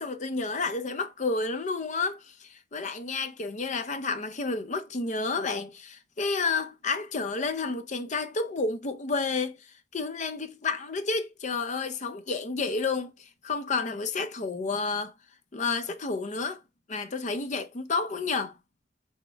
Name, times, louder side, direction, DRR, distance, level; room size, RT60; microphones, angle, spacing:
voice 1, 0.0-9.6 9.9-15.1 15.5-16.6 16.9-18.5, left 4 dB, 40° left, 0.6 m, -30 dB
6.2 x 2.2 x 3.3 m
head